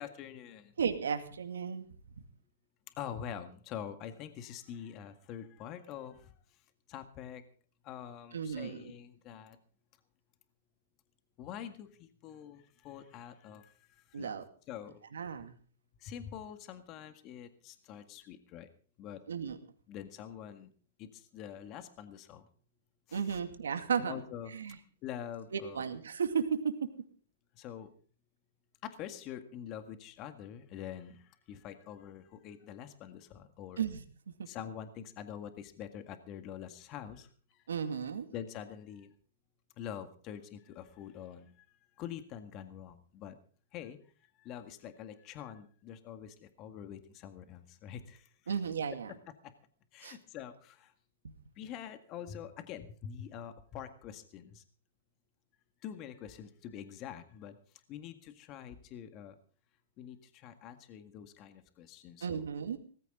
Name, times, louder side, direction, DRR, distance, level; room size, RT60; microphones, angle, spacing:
voice 1, 0.0-0.7 3.0-6.3 6.9-7.4 7.8-9.6 11.4-14.3 14.7-15.0 16.0-18.7 19.0-19.2 19.9-20.7 21.0-22.5 23.1-23.4 24.0-24.5 25.0-25.9 27.6-27.9 28.8-33.8 34.5-37.3 38.3-39.1 39.8-41.5 42.0-43.4 43.7-44.0 44.4-48.6 49.9-50.9 51.6-54.6 55.8-57.6 57.9-59.3 60.0-62.4, left 9 dB, 35° left, 9 dB, 1.8 m, -45 dB
voice 2, 0.8-1.9 8.3-8.9 14.1-14.4 15.1-15.5 19.3-19.6 23.1-24.2 24.5-24.8 25.5-26.5 33.8-34.0 34.4-34.5 37.7-38.3 48.5-49.1 50.0-50.2 51.2-51.3 62.2-62.8, right 7 dB, 85° right, 7 dB, 2.2 m, -34 dB
18.5 x 15.0 x 3.8 m, 0.43 s
hypercardioid pair, 125°, 0 cm